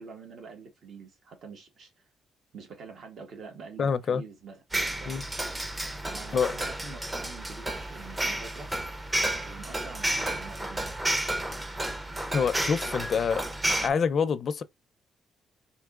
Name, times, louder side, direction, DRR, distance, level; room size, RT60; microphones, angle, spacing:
voice 1, 0.0-2.1 2.5-5.2 6.0-8.7 9.4-10.9, right 5 dB, 65° right, 1.3 m, -46 dB
voice 2, 3.8-4.2 5.1-5.2 6.3-6.5 12.3-13.4 13.8-14.6, left 6 dB, 50° left, 0.5 m, -26 dB
sound 1, 4.7-13.9, right 1 dB, 15° right, 0.6 m, -31 dB
4.6 x 2.8 x 2.4 m
cardioid pair, 90°, 0 cm